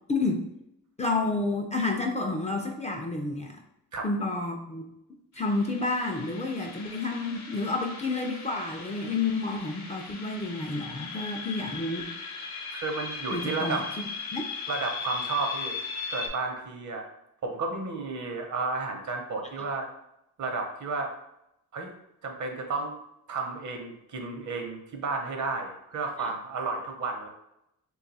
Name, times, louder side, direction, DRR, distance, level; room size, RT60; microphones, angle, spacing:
voice 1, 0.1-0.4 1.0-3.6 4.0-4.9 5.4-12.1 13.3-13.8 14.3-14.5, left 3 dB, 20° left, 1 dB, 0.3 m, -30 dB
sound 1, 5.4-16.3, left 4 dB, 55° left, 0.7 m, -38 dB
voice 2, 12.7-13.8 14.7-15.8 16.1-17.1 17.4-19.9 20.4-21.1 21.7-21.9 22.2-23.0 23.3-27.3, right 3 dB, 55° right, 3 dB, 0.7 m, -32 dB
2.6 x 2.3 x 4.0 m, 0.83 s
cardioid pair, 95°, 35 cm